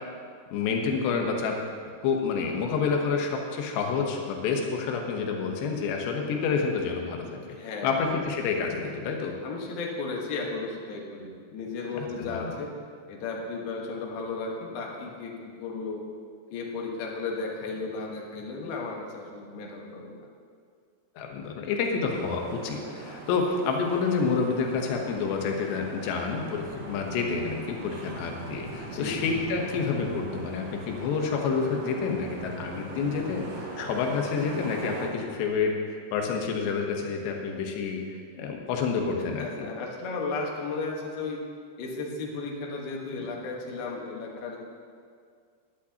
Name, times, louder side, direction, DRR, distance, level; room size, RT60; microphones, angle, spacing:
voice 1, 0.5-1.6 2.0-7.6 7.8-9.4 12.0-12.5 21.2-38.0 38.4-39.7, left 5 dB, 90° left, 2 dB, 3.3 m, -28 dB
voice 2, 7.5-8.1 9.4-12.7 13.1-16.0 16.5-20.3 28.9-29.2 39.4-41.4 41.8-44.6, left 3 dB, 70° left, -1 dB, 3.1 m, -34 dB
sound 1, 22.1-35.1, right 2 dB, 65° right, 2.9 m, -40 dB
17.0 x 11.0 x 2.9 m, 2.1 s
omnidirectional pair, 4.8 m